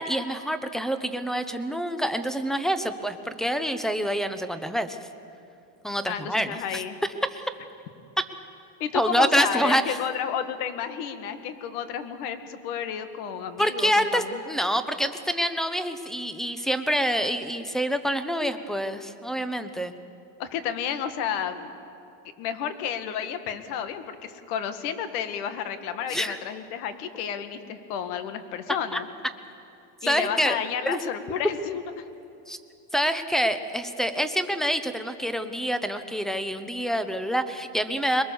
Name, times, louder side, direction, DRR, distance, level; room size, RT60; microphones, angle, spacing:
voice 1, 0.0-5.0 5.8-6.8 7.3-7.5 8.9-10.0 13.6-20.0 26.1-26.4 28.9-29.0 30.0-30.6 30.9-31.0 32.5-32.6 32.9-38.2, equal, ahead, 10 dB, 0.8 m, -26 dB
voice 2, 6.1-7.0 8.8-14.4 20.4-21.7 22.4-29.1 30.0-31.8, left 8 dB, 75° left, 9 dB, 2.0 m, -31 dB
22.5 x 22.0 x 7.1 m, 2.6 s
supercardioid pair, 145°, 45 cm